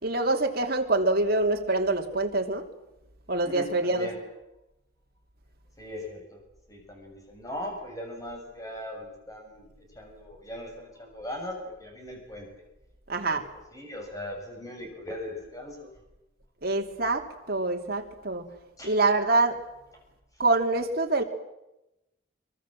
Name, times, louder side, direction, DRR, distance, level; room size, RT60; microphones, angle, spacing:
voice 1, 0.0-2.7 3.3-4.1 13.1-13.4 16.6-18.4 18.8-19.6 20.4-21.2, right 2 dB, 50° right, 3 dB, 2.9 m, -25 dB
voice 2, 3.4-4.2 5.8-6.4 6.7-9.7 9.9-12.5 13.7-15.9 18.8-18.9, left 1 dB, 20° left, 2 dB, 6.5 m, -39 dB
24.5 x 24.0 x 7.7 m, 0.92 s
head